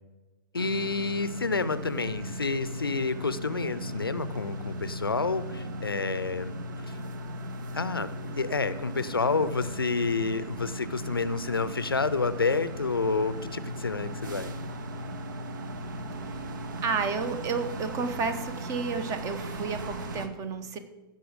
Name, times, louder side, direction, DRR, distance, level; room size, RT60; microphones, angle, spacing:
voice 1, 0.5-6.5 6.9-7.0 7.7-8.1 8.4-14.5, left 4 dB, 85° left, 14 dB, 0.6 m, -29 dB
sound 1, 0.5-20.3, equal, 60° right, 1.0 m, -37 dB
voice 2, 16.8-20.8, right 5 dB, 25° right, 10 dB, 1.0 m, -31 dB
15.5 x 5.6 x 5.1 m, 1.2 s
figure-of-eight pair, 105°, 12 cm